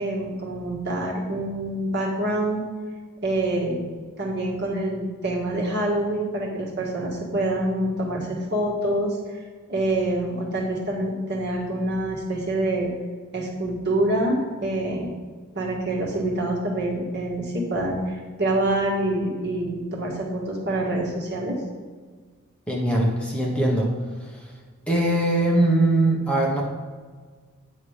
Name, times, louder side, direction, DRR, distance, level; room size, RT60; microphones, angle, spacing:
voice 1, 0.0-2.6 3.2-3.9 4.2-9.2 9.7-12.9 13.3-15.1 15.5-21.6, right 1 dB, 50° right, -2 dB, 1.8 m, -26 dB
voice 2, 22.7-23.9 24.2-24.4 24.9-26.6, right 1 dB, 5° left, -3 dB, 1.1 m, -21 dB
9.3 x 5.6 x 5.0 m, 1.5 s
head